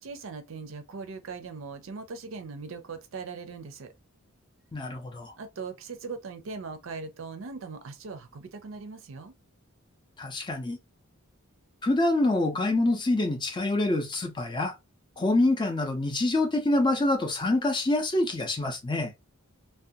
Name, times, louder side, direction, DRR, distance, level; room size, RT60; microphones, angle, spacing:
voice 1, 0.0-3.9 5.4-9.3, right 4 dB, 65° right, 0.5 m, -40 dB
voice 2, 4.7-5.3 10.2-10.8 11.8-14.7 15.2-19.1, left 2 dB, 20° left, 0.5 m, -26 dB
2.4 x 2.2 x 2.6 m
head